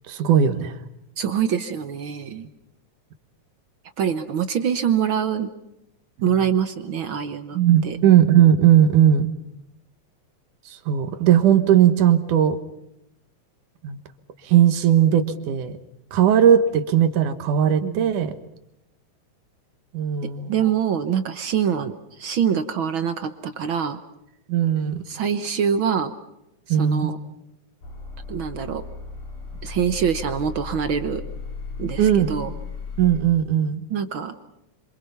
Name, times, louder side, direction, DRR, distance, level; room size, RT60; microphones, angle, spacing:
voice 1, 0.1-0.8 7.5-9.3 10.7-12.6 13.8-14.0 14.4-15.7 16.1-18.3 19.9-20.5 24.5-25.0 26.7-27.1 32.0-32.3 33.0-33.8, right 10 dB, 85° right, 9 dB, 2.9 m, -18 dB
voice 2, 1.2-2.5 4.0-5.5 6.2-7.6 7.8-8.0 17.8-18.1 20.2-24.0 25.1-26.1 26.7-27.2 28.3-28.8 29.6-31.2 31.8-32.5 33.9-34.3, right 8 dB, 60° right, 9 dB, 1.3 m, -24 dB
sound 1, 27.8-33.2, left 4 dB, 75° left, 5.2 m, -35 dB
28.0 x 25.5 x 5.7 m, 0.85 s
omnidirectional pair, 3.5 m